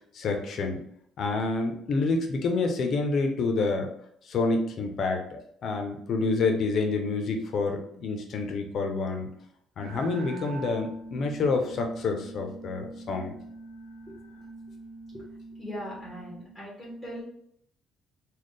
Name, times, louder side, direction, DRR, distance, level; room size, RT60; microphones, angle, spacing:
voice 1, 0.1-0.8 1.2-3.9 4.2-9.3 9.8-13.3, left 3 dB, 50° left, 4 dB, 0.7 m, -28 dB
sound 1, 9.8-16.4, right 2 dB, 50° right, 0.9 m, -43 dB
voice 2, 15.6-17.2, equal, 5° right, -6 dB, 1.2 m, -39 dB
4.1 x 2.3 x 3.2 m, 0.70 s
cardioid pair, 145°, 0 cm